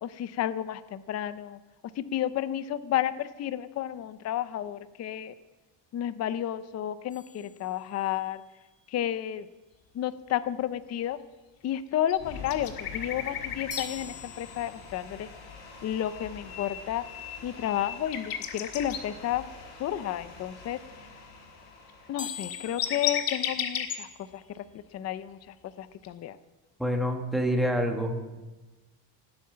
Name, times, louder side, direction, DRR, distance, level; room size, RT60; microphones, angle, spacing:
voice 1, 0.0-1.6 2.0-5.3 5.9-8.4 8.9-9.5 9.9-11.2 11.6-15.3 15.8-17.0 17.4-19.5 19.8-21.1 22.1-26.4, left 11 dB, 35° left, 14 dB, 0.5 m, -32 dB
sound 1, 7.1-8.4 13.7-15.2 22.2-24.3, left 6 dB, 15° left, 1.8 m, -44 dB
sound 2, 12.1-24.3, left 4 dB, 80° left, 6.8 m, -47 dB
sound 3, 12.1-13.9 15.9-19.0 21.9-22.0 22.2-24.0 26.0-26.1, left 9 dB, 50° left, 1.8 m, -33 dB
voice 2, 26.8-28.4, equal, ahead, 2 dB, 1.6 m, -27 dB
18.5 x 8.5 x 8.6 m, 1.1 s
cardioid pair, 160°, 45 cm